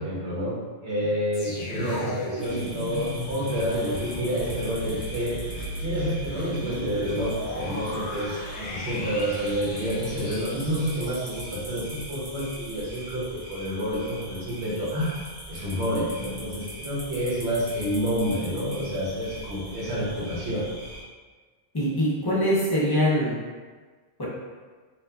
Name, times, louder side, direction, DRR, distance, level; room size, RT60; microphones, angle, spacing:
voice 1, 0.0-5.4 5.8-15.1 15.5-20.6, equal, 80° right, -7 dB, 1.1 m, -29 dB
sound 1, 1.3-12.5 12.8-13.0, left 1 dB, 70° left, 0.8 m, -36 dB
sound 2, 2.4-21.0, right 1 dB, 25° right, 0.4 m, -41 dB
voice 2, 21.7-23.4 24.2-24.3, equal, 30° left, -7 dB, 0.5 m, -23 dB
2.9 x 2.3 x 2.2 m, 1.4 s
omnidirectional pair, 1.1 m